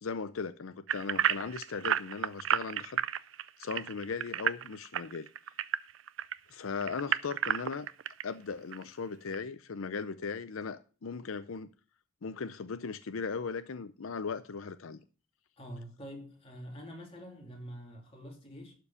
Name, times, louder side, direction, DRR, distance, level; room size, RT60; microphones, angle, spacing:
voice 1, 0.0-3.0 3.6-5.3 6.5-7.9 8.2-11.7 12.2-15.0, left 5 dB, 85° left, 0.6 m, -38 dB
sound 1, 0.9-6.3 6.8-8.2 8.7-8.8 9.3-9.4, right 9 dB, 65° right, 0.4 m, -31 dB
voice 2, 15.6-18.7, equal, 30° left, 2.7 m, -46 dB
12.0 x 4.7 x 7.0 m
head